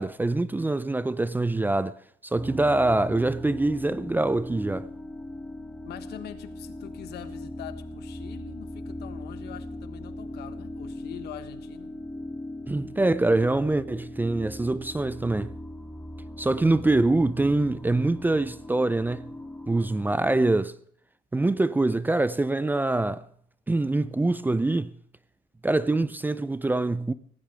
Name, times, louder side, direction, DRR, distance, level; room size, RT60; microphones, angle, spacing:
voice 1, 0.0-4.9 12.7-15.6 16.4-19.3 19.7-20.8 21.3-23.2 23.7-24.9 25.6-27.1, right 2 dB, 10° right, 0.5 m, -24 dB
sound 1, 2.4-20.5, left 1 dB, 5° left, 1.8 m, -40 dB
voice 2, 5.8-11.9, left 11 dB, 75° left, 1.4 m, -43 dB
17.0 x 16.0 x 3.5 m
cardioid pair, 110°, 17 cm